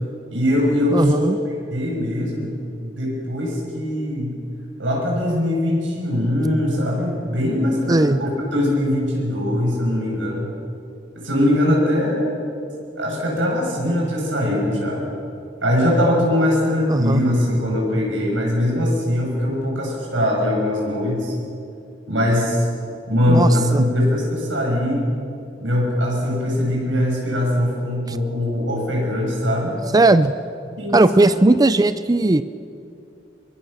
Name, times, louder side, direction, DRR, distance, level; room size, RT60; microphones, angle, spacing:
voice 1, 0.3-4.4 4.8-10.5 11.1-12.5 13.0-15.1 15.6-21.3 22.1-22.7 23.1-25.1 25.6-29.8 30.8-31.3, left 1 dB, 85° right, -2 dB, 7.0 m, -21 dB
voice 2, 0.9-1.4 7.9-8.2 16.9-17.2 23.3-23.9 29.9-30.3 30.9-32.4, right 2 dB, 20° right, 13 dB, 0.5 m, -17 dB
23.0 x 23.0 x 6.9 m, 2.5 s
head